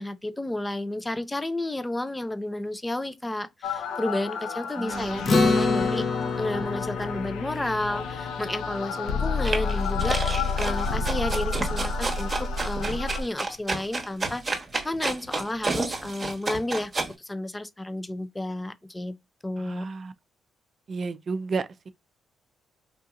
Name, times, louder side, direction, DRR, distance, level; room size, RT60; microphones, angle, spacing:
voice 1, 0.0-6.1 6.4-16.9 17.2-19.1 19.4-19.9, left 1 dB, 15° left, 0.5 m, -31 dB
sound 1, 3.6-13.2, left 4 dB, 80° left, 0.5 m, -30 dB
voice 2, 4.8-5.3 19.6-20.1 20.9-21.9, right 4 dB, 45° right, 0.4 m, -32 dB
Acoustic guitar, 5.3-10.0, left 3 dB, 40° left, 0.8 m, -27 dB
sound 2, 9.4-17.1, right 3 dB, 30° right, 1.1 m, -30 dB
3.7 x 2.7 x 2.3 m
cardioid pair, 90°, 0 cm